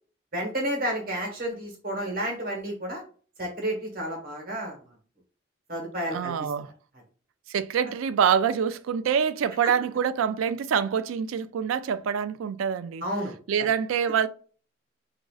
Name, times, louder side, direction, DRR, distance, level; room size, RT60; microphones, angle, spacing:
voice 1, 0.3-3.0 3.4-4.8 5.7-6.3 9.6-9.7 13.0-13.3, right 1 dB, 45° right, 1.2 m, -31 dB
voice 2, 6.1-6.7 7.5-13.0 13.5-14.3, right 7 dB, 90° right, 0.3 m, -25 dB
4.9 x 2.5 x 2.3 m
head